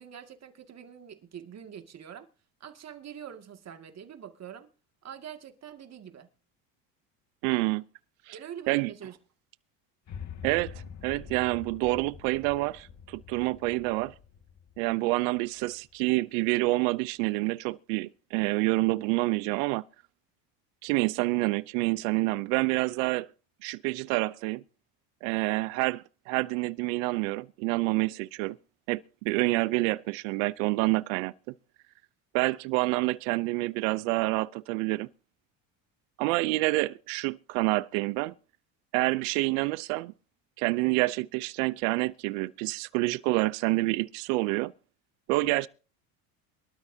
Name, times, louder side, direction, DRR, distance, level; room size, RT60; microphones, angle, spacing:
voice 1, 0.0-2.3 2.6-4.7 5.0-6.3 8.3-9.2, right 8 dB, 40° right, 2.3 m, -45 dB
voice 2, 7.4-7.8 8.3-8.4 8.7-8.9 10.4-14.1 14.8-19.8 20.8-23.3 23.6-24.6 25.2-28.6 28.9-31.3 32.3-35.1 36.2-38.3 38.9-40.1 40.6-44.7 45.3-45.7, right 22 dB, 80° right, 0.7 m, -28 dB
sound 1, 10.1-16.2, left 7 dB, 45° left, 2.1 m, -46 dB
23.5 x 12.5 x 2.8 m
supercardioid pair, 95°, 40 cm